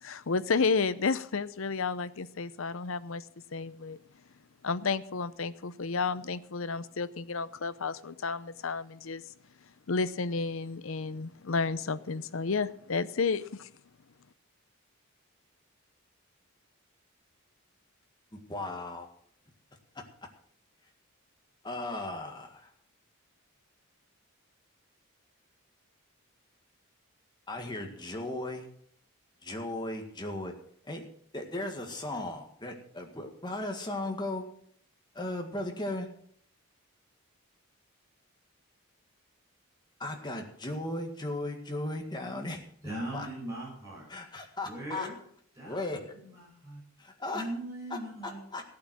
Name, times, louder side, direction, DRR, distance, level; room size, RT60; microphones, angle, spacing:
voice 1, 0.0-3.3 3.5-4.0 4.6-9.2 9.9-13.7, left 4 dB, 65° left, 15 dB, 0.6 m, -31 dB
voice 2, 18.3-19.1 21.6-22.7 27.5-28.7 29.4-30.5 30.8-31.1 31.3-34.4 35.1-36.1 40.0-42.6 43.1-43.3 44.1-45.1 45.6-46.2 47.0-47.4 47.9-48.6, left 2 dB, 20° left, 3 dB, 1.8 m, -36 dB
voice 3, 42.8-44.1 44.6-45.2 45.5-46.8 47.3-48.4, right 1 dB, 15° right, -5 dB, 6.6 m, -40 dB
15.5 x 8.6 x 6.2 m, 0.63 s
head